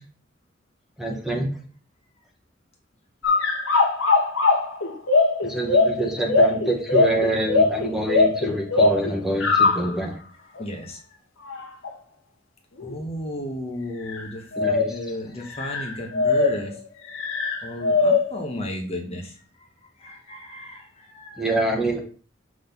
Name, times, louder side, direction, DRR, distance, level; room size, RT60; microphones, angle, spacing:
voice 1, 1.0-1.5 5.4-10.1 14.6-14.9 21.4-22.0, right 1 dB, ahead, 0 dB, 1.2 m, -26 dB
sound 1, 3.2-9.9 10.6-10.7 11.5-11.9 12.8-12.9 14.1-14.2 14.5-15.0 15.5-16.7 17.1-18.5, left 3 dB, 75° left, 1.3 m, -21 dB
voice 2, 10.6-11.0 12.8-14.4 14.8-16.7 17.6-19.3 20.0-21.4, left 1 dB, 30° left, 2 dB, 1.1 m, -34 dB
6.4 x 3.9 x 5.2 m, 0.40 s
head